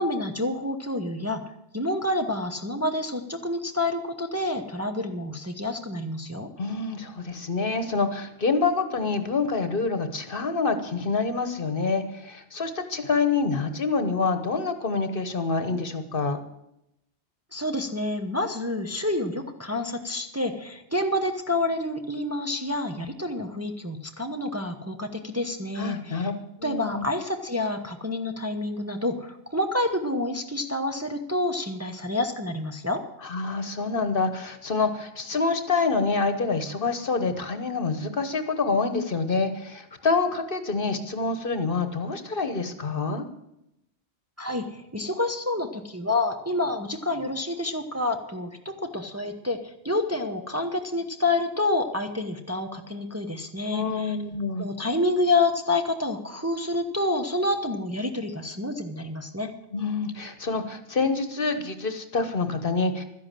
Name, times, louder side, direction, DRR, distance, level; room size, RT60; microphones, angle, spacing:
voice 1, 0.0-1.4 1.7-6.5 17.5-26.3 26.6-33.0 44.4-54.2 54.6-59.5, left 2 dB, 15° right, 4 dB, 0.9 m, -28 dB
voice 2, 6.6-16.4 25.8-26.3 26.6-27.0 33.2-43.2 53.7-54.7 59.7-63.0, left 4 dB, 50° left, 9 dB, 1.3 m, -27 dB
12.5 x 10.5 x 7.6 m, 0.83 s
omnidirectional pair, 1.2 m